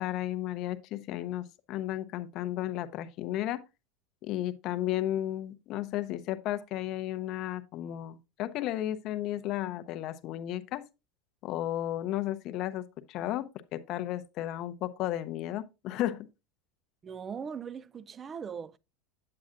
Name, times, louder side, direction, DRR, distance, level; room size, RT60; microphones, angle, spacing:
voice 1, 0.0-3.6 4.2-10.9 11.4-16.3, left 13 dB, 50° left, 0.6 m, -34 dB
voice 2, 17.0-18.8, right 6 dB, 25° right, 0.3 m, -40 dB
8.6 x 7.6 x 2.5 m
supercardioid pair, 130°, 0 cm